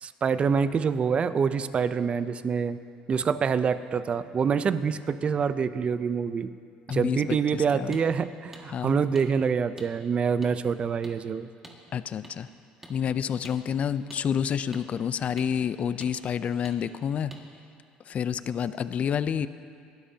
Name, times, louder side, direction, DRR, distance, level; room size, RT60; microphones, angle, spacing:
voice 1, 0.0-2.8 3.1-6.5 6.9-11.5, right 6 dB, 40° right, 13 dB, 0.6 m, -26 dB
voice 2, 6.9-8.0 8.7-9.0 11.9-12.5 12.9-17.3 18.1-19.5, left 8 dB, 45° left, 14 dB, 0.5 m, -29 dB
sound 1, 7.9-8.0 8.5-8.7 9.2-9.3 9.8-9.9 10.4-10.5 11.0-11.2 11.6-11.8 12.2-12.3 12.8-13.0 13.4-13.6 14.1-14.2 14.7-14.9 15.4-15.5 16.0-16.1 16.7-16.8 17.3-17.4, right 1 dB, 10° right, 2.0 m, -46 dB
21.5 x 12.5 x 2.8 m, 2.3 s
supercardioid pair, 85°, 3 cm